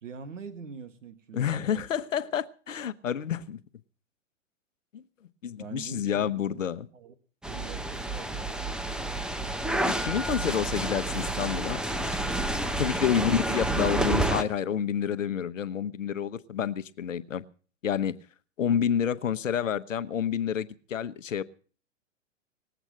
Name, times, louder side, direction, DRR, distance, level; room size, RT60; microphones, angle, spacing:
voice 1, 0.0-1.9 5.6-6.6 6.9-7.1 7.5-8.5 13.1-13.6, right 6 dB, 80° right, 11 dB, 1.8 m, -43 dB
voice 2, 1.3-3.6 4.9-5.0 5.4-6.9 9.9-12.2 12.8-17.4 17.8-18.1 18.6-21.4, left 8 dB, 80° left, 13 dB, 1.0 m, -29 dB
sound 1, 7.4-14.4, right 1 dB, ahead, 0.8 m, -29 dB
20.0 x 8.1 x 7.5 m, 0.42 s
hypercardioid pair, 110°, 38 cm